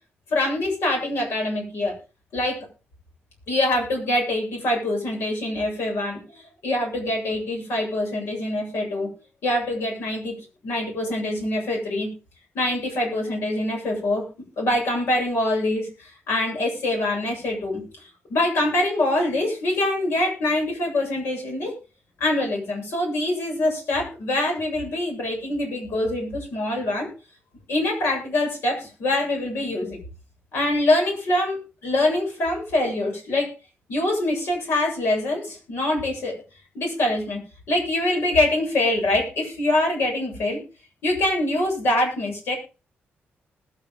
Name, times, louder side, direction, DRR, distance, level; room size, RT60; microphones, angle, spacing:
voice 1, 0.3-1.9 2.3-2.6 3.5-9.1 9.4-12.1 12.5-14.3 14.6-17.9 18.3-21.7 22.2-27.1 27.7-30.0 30.5-33.5 33.9-36.4 36.7-40.6 41.0-42.5, left 1 dB, 80° left, 0 dB, 7.7 m, -24 dB
20.0 x 9.0 x 3.8 m, 0.32 s
wide cardioid pair, 150°, 4 cm